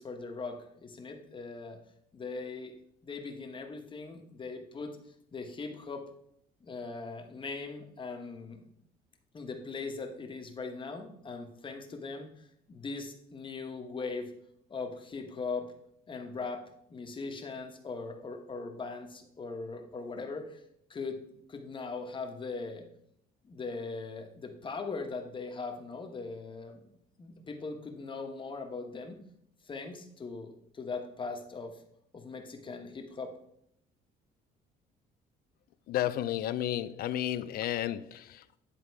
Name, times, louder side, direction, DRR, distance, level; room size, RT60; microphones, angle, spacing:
voice 1, 0.0-1.8 2.1-2.7 3.0-5.0 5.3-6.0 6.6-8.6 9.3-14.3 14.7-15.7 16.1-16.6 16.9-20.6 20.9-21.2 21.5-22.9 23.4-26.8 27.2-29.2 29.7-31.8 32.1-33.3, left 4 dB, 30° left, 1.2 m, -40 dB
voice 2, 35.9-38.6, left 12 dB, 60° left, 0.5 m, -32 dB
9.9 x 3.7 x 4.7 m
cardioid pair, 110°, 17 cm